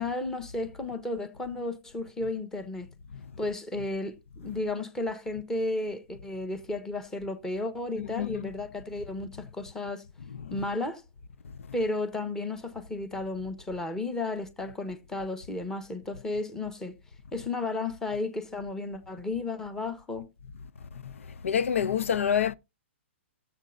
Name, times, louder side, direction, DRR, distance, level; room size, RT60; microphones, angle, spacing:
voice 1, 0.0-2.9 3.4-10.0 10.5-11.0 11.7-16.9 17.3-20.3, left 2 dB, 5° left, 1.3 m, -33 dB
voice 2, 8.0-8.5 10.4-10.5 21.0-22.5, left 8 dB, 85° left, 0.6 m, -28 dB
15.0 x 8.0 x 2.7 m
hypercardioid pair, 150°, 7 cm